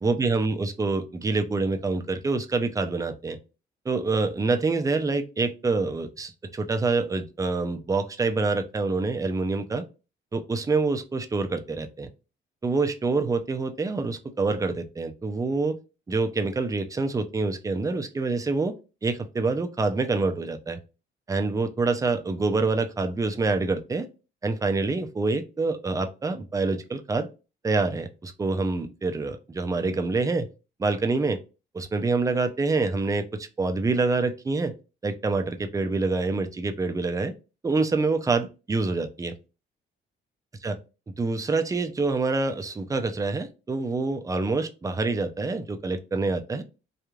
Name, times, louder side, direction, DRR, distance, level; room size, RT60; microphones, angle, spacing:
voice 1, 0.0-3.4 3.9-9.8 10.3-12.1 12.6-15.8 16.1-18.7 19.0-20.8 21.3-24.1 24.4-27.3 27.6-30.5 30.8-31.4 31.7-34.7 35.0-37.3 37.6-39.3 40.6-40.8 41.2-46.6, right 3 dB, 15° right, 0.4 m, -26 dB
3.0 x 2.4 x 2.3 m
cardioid pair, 90°, 20 cm